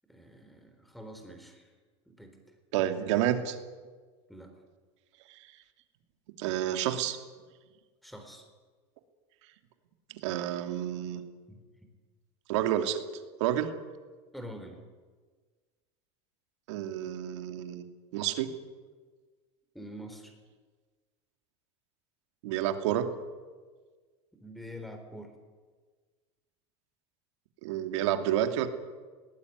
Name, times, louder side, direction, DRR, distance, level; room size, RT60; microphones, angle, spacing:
voice 1, 0.1-1.7 2.1-2.4 4.3-4.5 8.0-8.4 11.5-11.6 14.3-14.8 19.7-20.3 24.3-25.3, equal, ahead, 6 dB, 3.9 m, -45 dB
voice 2, 2.7-3.6 5.3-5.4 6.4-7.2 10.2-11.2 12.5-13.0 13.4-13.7 16.7-17.8 18.1-18.5 22.4-23.1 27.6-28.7, right 11 dB, 75° right, 7 dB, 2.7 m, -29 dB
21.0 x 19.5 x 9.5 m, 1.4 s
supercardioid pair, 150°, 15 cm